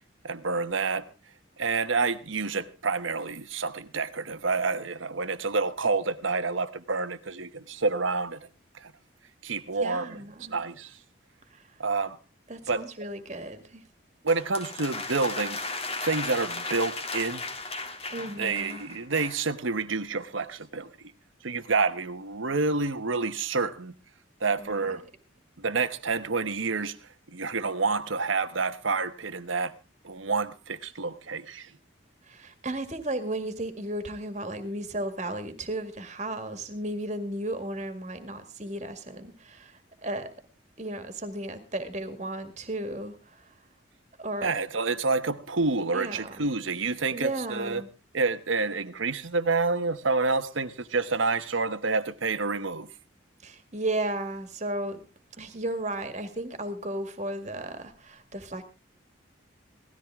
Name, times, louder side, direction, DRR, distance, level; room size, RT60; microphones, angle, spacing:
voice 1, 0.2-1.1 1.6-8.4 8.7-8.9 9.4-10.2 10.5-11.0 11.8-12.2 12.7-12.8 14.2-17.4 18.4-21.1 21.4-23.9 24.4-25.0 25.6-27.0 27.3-29.7 30.0-31.7 44.4-47.8 48.1-52.9, right 4 dB, 80° right, 1.1 m, -28 dB
voice 2, 9.8-10.6 11.5-11.6 12.5-13.8 18.1-18.8 24.6-25.0 32.3-40.3 40.8-43.5 44.2-44.5 45.9-46.4 47.1-47.9 53.4-55.0 55.4-58.6, right 1 dB, 35° right, 2.0 m, -34 dB
sound 1, 14.3-19.4, left 3 dB, 30° left, 1.7 m, -36 dB
18.0 x 13.5 x 3.6 m
head